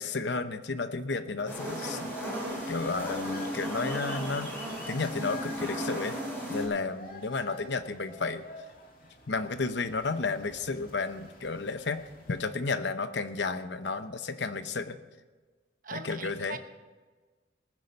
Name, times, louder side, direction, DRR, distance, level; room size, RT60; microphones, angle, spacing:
voice 1, 0.0-2.2 2.7-6.2 6.5-8.4 9.3-15.0 15.9-16.6, left 4 dB, 65° left, 10 dB, 0.8 m, -32 dB
sound 1, 1.4-12.6, left 3 dB, 50° left, 2.2 m, -49 dB
sound 2, 1.5-6.6, equal, 10° left, 4.7 m, -35 dB
voice 2, 15.8-16.6, right 5 dB, 45° right, 8 dB, 1.0 m, -41 dB
20.0 x 9.7 x 5.4 m, 1.4 s
head